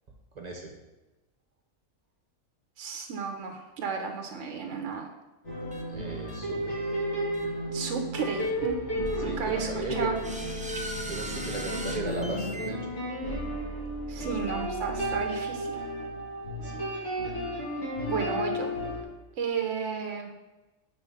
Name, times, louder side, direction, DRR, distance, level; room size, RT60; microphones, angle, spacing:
voice 1, 0.3-0.7 5.9-6.8 9.2-10.1 11.0-12.9 14.2-14.7 16.6-16.8, right 3 dB, 35° right, 1 dB, 1.0 m, -37 dB
voice 2, 2.8-5.1 7.7-10.1 14.1-15.8 18.1-18.8 19.4-20.3, right 5 dB, 70° right, 3 dB, 1.1 m, -33 dB
sound 1, 5.4-19.0, equal, 60° left, 2.8 m, -33 dB
sound 2, 5.7-5.8 6.3-6.4 7.3-7.5 8.4-8.5 9.1-9.2 10.2-12.7, right 1 dB, 15° right, 0.3 m, -39 dB
6.9 x 4.2 x 5.6 m, 1.1 s
omnidirectional pair, 1.3 m